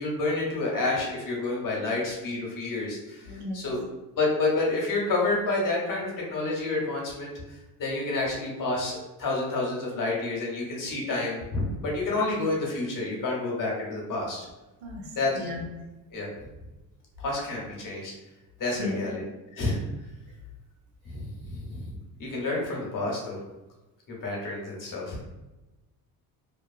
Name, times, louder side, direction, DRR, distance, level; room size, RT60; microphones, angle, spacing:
voice 1, 0.0-3.8 4.2-7.3 7.8-14.4 15.1-15.3 16.1-16.3 17.2-18.1 18.6-19.2 19.5-19.8 21.0-23.4 24.2-25.2, left 2 dB, 50° left, -2 dB, 1.0 m, -29 dB
voice 2, 3.2-3.6 14.8-15.6 18.8-19.0, left 2 dB, 85° right, -3 dB, 0.9 m, -35 dB
2.6 x 2.2 x 2.4 m, 1.0 s
supercardioid pair, 80°, 42 cm